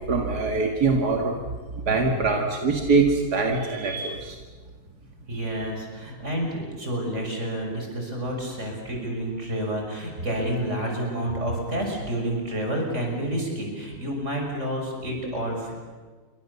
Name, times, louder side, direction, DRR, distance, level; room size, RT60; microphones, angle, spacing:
voice 1, 0.1-1.3 1.8-4.4, right 4 dB, 90° right, 2 dB, 2.6 m, -23 dB
voice 2, 5.3-15.7, right 1 dB, 50° right, 1 dB, 6.5 m, -29 dB
28.5 x 24.5 x 7.1 m, 1.4 s
omnidirectional pair, 1.6 m